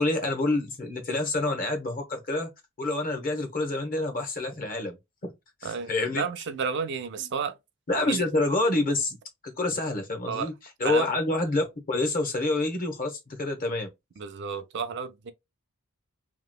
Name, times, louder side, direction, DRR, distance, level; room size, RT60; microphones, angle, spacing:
voice 1, 0.0-2.5 2.8-5.0 5.2-5.3 5.6-6.3 7.2-7.3 7.9-9.2 9.4-10.5 10.8-13.9, left 2 dB, 40° left, 0.9 m, -27 dB
voice 2, 5.6-7.6 8.0-8.2 10.3-10.5 10.8-11.1 14.2-15.3, right 6 dB, 50° right, 0.4 m, -31 dB
2.9 x 2.8 x 2.2 m
head